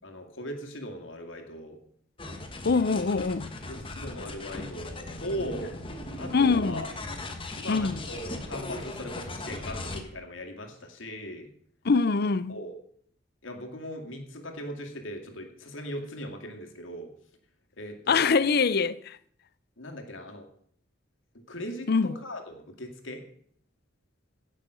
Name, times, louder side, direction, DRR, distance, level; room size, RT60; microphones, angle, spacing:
voice 1, 0.0-1.8 3.7-5.7 6.2-6.9 7.5-11.5 12.5-12.8 13.4-17.1 17.8-18.3 19.8-20.5 21.5-23.2, equal, 85° left, 2.3 m, -39 dB
sound 1, 2.2-10.0, left 2 dB, 30° left, 1.4 m, -38 dB
voice 2, 2.6-3.5 6.3-6.8 7.7-8.0 11.8-12.5 18.1-19.2 21.9-22.2, left 4 dB, 55° left, 0.5 m, -24 dB
16.5 x 6.4 x 6.3 m
head